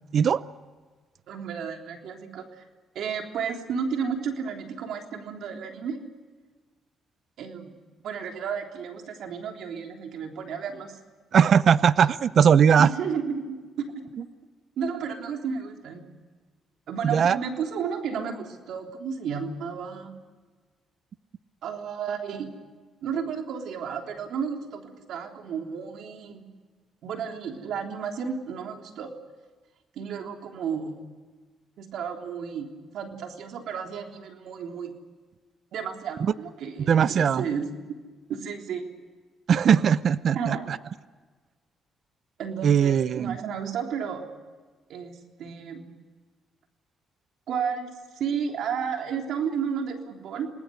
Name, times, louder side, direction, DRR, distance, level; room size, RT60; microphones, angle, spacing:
voice 1, 1.3-2.6 3.0-6.0 7.4-7.7 8.0-10.9 12.8-13.6 14.8-16.0 16.9-20.1 21.6-22.5 23.0-26.4 27.0-29.1 30.0-31.0 31.8-34.9 35.7-37.7 38.3-38.8 40.3-40.7 42.4-44.3 44.9-45.9 47.5-50.5, right 6 dB, 75° right, 3 dB, 3.4 m, -32 dB
voice 2, 11.3-12.9 17.0-17.4 36.2-36.3 36.9-37.4 39.5-40.8 42.6-43.4, right 7 dB, 55° right, 16 dB, 0.6 m, -20 dB
28.5 x 19.5 x 6.5 m, 1.4 s
cardioid pair, 90°, 0 cm